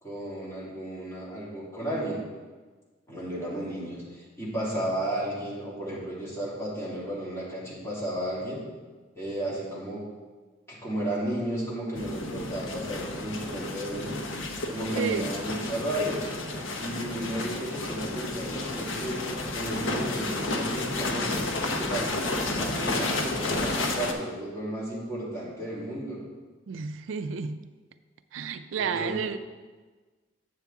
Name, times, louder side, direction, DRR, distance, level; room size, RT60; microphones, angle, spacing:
voice 1, 0.0-2.2 3.1-8.6 9.2-10.0 10.7-14.2 14.7-16.2 16.8-19.2 19.5-26.2 28.8-29.2, right 1 dB, 15° left, -7 dB, 2.4 m, -33 dB
sound 1, 11.9-24.1, left 2 dB, 90° left, 0.8 m, -31 dB
voice 2, 15.0-15.3 26.7-27.7 28.3-29.4, right 6 dB, 85° right, 11 dB, 0.4 m, -31 dB
8.4 x 6.9 x 3.6 m, 1.4 s
head